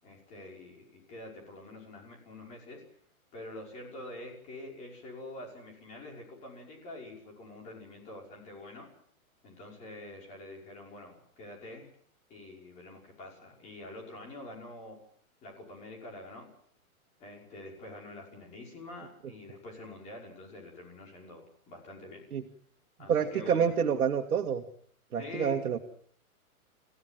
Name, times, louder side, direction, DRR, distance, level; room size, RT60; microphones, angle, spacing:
voice 1, 0.0-2.8 3.3-8.9 9.4-11.9 12.3-15.0 15.4-16.5 17.2-22.3 23.0-23.7 25.2-25.6, left 2 dB, 15° left, 0 dB, 5.8 m, -46 dB
voice 2, 23.1-24.6 25.1-25.8, right 7 dB, 75° right, 2 dB, 2.2 m, -27 dB
28.5 x 16.5 x 7.6 m, 0.62 s
hypercardioid pair, 175°, 43 cm